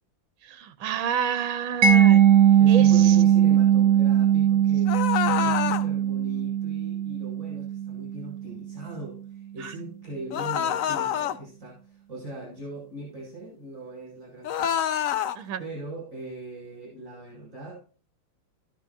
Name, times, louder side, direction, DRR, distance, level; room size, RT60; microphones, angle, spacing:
voice 1, 0.4-2.2 2.7-3.2 9.6-9.7 15.3-15.6, right 8 dB, 80° right, 12 dB, 1.6 m, -30 dB
Mallet percussion, 1.8-8.6, right 9 dB, 60° right, 0.9 m, -20 dB
voice 2, 2.5-15.1 15.6-17.8, right 2 dB, 40° right, -4 dB, 7.3 m, -40 dB
sound 1, 4.9-5.9 10.3-11.4 14.4-15.4, left 9 dB, 70° left, 0.7 m, -26 dB
13.5 x 12.5 x 2.7 m, 0.37 s
omnidirectional pair, 2.1 m